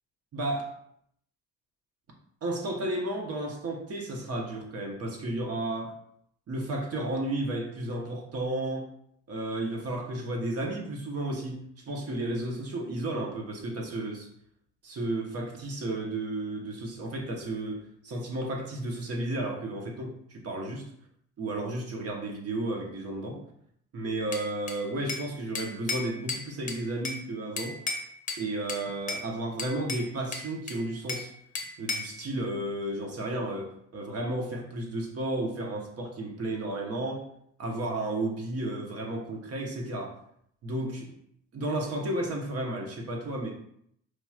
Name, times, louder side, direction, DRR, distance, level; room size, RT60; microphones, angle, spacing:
voice 1, 0.3-0.7 2.4-5.9 6.5-8.9 9.3-14.3 14.8-20.9 21.4-23.4 23.9-27.8 28.4-31.3 31.8-37.2 37.6-40.2 40.6-41.1 41.5-43.5, right 1 dB, 55° right, 1 dB, 1.0 m, -33 dB
Bell / Glass, 24.3-25.3 25.5-27.2 27.6-28.4 28.7-29.3 29.6-31.3 31.5-32.2, left 3 dB, 25° left, 0.7 m, -34 dB
4.6 x 2.9 x 2.4 m, 0.69 s
cardioid pair, 85°, 29 cm